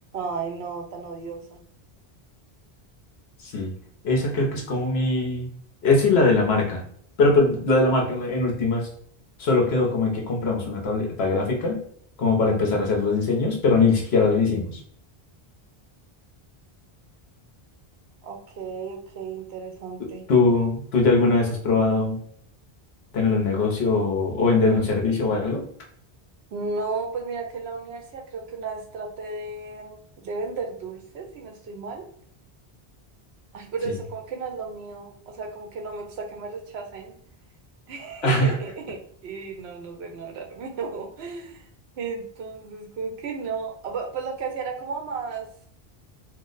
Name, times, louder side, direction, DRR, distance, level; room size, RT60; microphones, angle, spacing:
voice 1, 0.1-1.6 18.2-20.2 26.5-32.1 33.5-37.1 37.9-41.7 42.0-45.5, right 4 dB, 85° right, 3 dB, 0.9 m, -34 dB
voice 2, 4.0-5.5 5.8-6.8 7.2-8.9 9.4-11.8 12.2-14.8 20.3-22.2 23.1-25.6 38.2-38.5, left 3 dB, 85° left, 0 dB, 1.0 m, -21 dB
2.7 x 2.0 x 3.8 m, 0.63 s
omnidirectional pair, 1.0 m